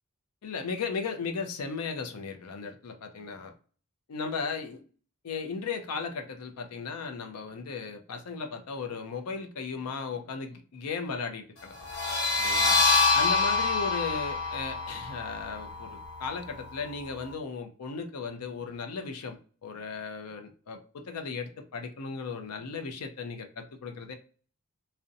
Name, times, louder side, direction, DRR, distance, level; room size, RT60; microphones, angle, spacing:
voice 1, 0.4-3.5 4.1-4.8 5.2-11.7 12.4-12.8 13.1-24.2, left 5 dB, 90° left, 0.5 m, -36 dB
sound 1, 11.8-17.2, left 4 dB, 60° left, 1.0 m, -27 dB
2.5 x 2.1 x 2.6 m
head